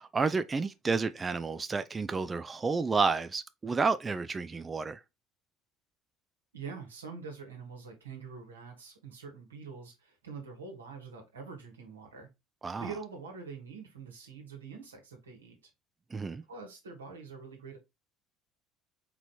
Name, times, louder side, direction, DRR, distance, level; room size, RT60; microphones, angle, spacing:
voice 1, 0.0-5.0 12.6-12.9 16.1-16.4, right 4 dB, 25° right, 0.4 m, -30 dB
voice 2, 6.5-12.3 12.8-15.6 16.5-17.8, right 5 dB, 90° right, 1.5 m, -45 dB
4.5 x 3.9 x 3.0 m
hypercardioid pair, 65°, 0 cm